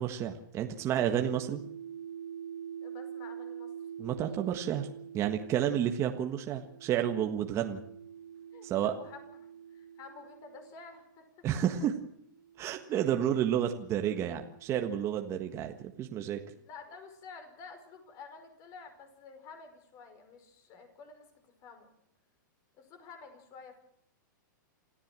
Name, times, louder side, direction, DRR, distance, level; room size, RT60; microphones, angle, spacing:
voice 1, 0.0-1.6 4.0-4.9 5.1-7.8 8.6-8.9 11.4-11.9 12.6-16.4, right 10 dB, 25° right, 4 dB, 1.6 m, -30 dB
sound 1, 0.8-11.1 12.0-15.8, right 8 dB, 75° right, 2.4 m, -47 dB
voice 2, 2.8-3.7 4.2-4.4 8.5-11.5 16.5-21.9 22.8-23.8, left 5 dB, 35° left, 7 dB, 5.3 m, -51 dB
27.0 x 14.5 x 7.6 m, 0.72 s
hypercardioid pair, 145°, 11 cm